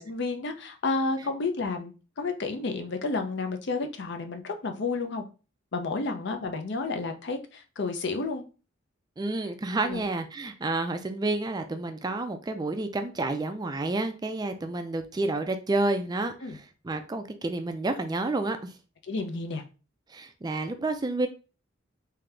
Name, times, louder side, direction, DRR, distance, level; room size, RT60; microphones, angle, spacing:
voice 1, 0.0-5.2 5.7-8.4 9.8-10.0 16.4-16.6 19.1-19.6, left 3 dB, 60° left, 6 dB, 0.6 m, -31 dB
voice 2, 9.2-18.7 20.1-21.3, right 2 dB, 20° right, 7 dB, 0.4 m, -30 dB
3.8 x 2.8 x 3.3 m, 0.33 s
head